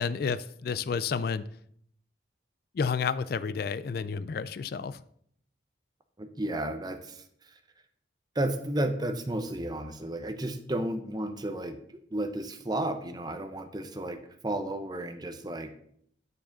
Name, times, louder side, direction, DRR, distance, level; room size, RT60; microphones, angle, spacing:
voice 1, 0.0-1.4 2.8-5.0, left 6 dB, 50° left, 16 dB, 0.3 m, -30 dB
voice 2, 6.2-7.5 8.3-11.8 12.1-15.7, right 1 dB, 20° right, 7 dB, 0.8 m, -33 dB
9.5 x 4.8 x 5.9 m, 0.68 s
head